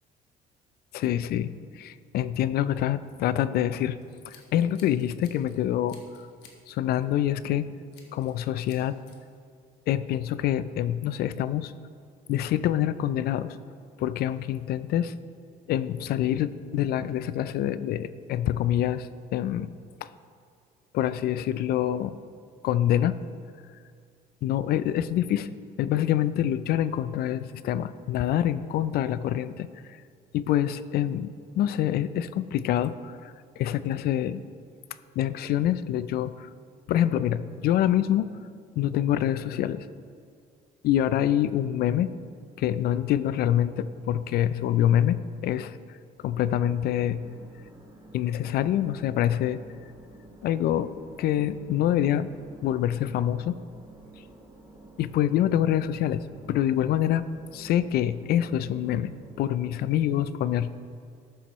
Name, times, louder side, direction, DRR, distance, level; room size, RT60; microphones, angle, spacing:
voice 1, 0.9-4.0 4.3-6.0 6.7-7.7 8.1-9.0 9.9-11.7 12.3-13.6 14.0-15.1 15.7-19.7 20.0-20.1 20.9-22.2 22.6-23.2 24.4-30.0 30.3-34.4 35.2-36.5 36.9-38.3 38.8-39.9 40.8-42.1 42.6-45.2 45.4-45.8 46.2-47.3 48.1-49.6 50.4-50.9 51.2-52.3 52.6-53.6 55.0-57.2 57.5-59.1 59.4-60.7, left 11 dB, 65° left, 15 dB, 0.4 m, -26 dB
Scissors, 4.0-5.6 5.9-6.6 6.9-7.2 7.9-8.4 8.7-9.2, left 6 dB, 90° left, 1.2 m, -54 dB
sound 1, 46.6-59.9, right 1 dB, 25° right, 1.8 m, -51 dB
13.0 x 7.1 x 3.1 m, 2.2 s
cardioid pair, 110°, 17 cm